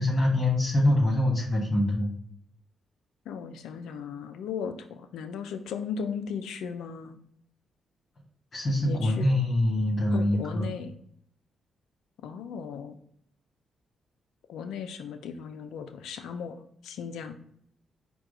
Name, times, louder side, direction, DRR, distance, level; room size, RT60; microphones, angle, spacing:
voice 1, 0.0-2.1 8.5-10.7, left 1 dB, 40° left, -5 dB, 1.7 m, -24 dB
voice 2, 3.3-7.2 8.8-9.3 10.1-10.9 12.2-13.0 14.5-16.6 16.8-17.4, left 6 dB, 80° left, 8 dB, 0.4 m, -36 dB
4.7 x 2.3 x 4.8 m, 0.67 s
supercardioid pair, 60°, 0 cm